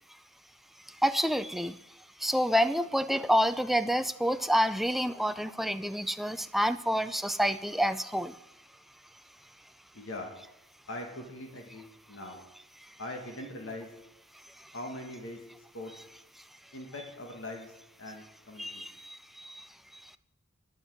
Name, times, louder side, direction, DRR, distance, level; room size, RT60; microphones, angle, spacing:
voice 1, 0.9-1.8 2.2-8.4 14.6-14.7 18.6-20.2, equal, ahead, 11 dB, 0.4 m, -28 dB
voice 2, 9.9-10.3 10.9-12.4 13.0-13.9 14.7-15.4 15.7-15.9 16.7-17.7 18.0-18.9, left 1 dB, 75° left, 2 dB, 2.0 m, -41 dB
10.5 x 7.9 x 8.8 m, 0.87 s
head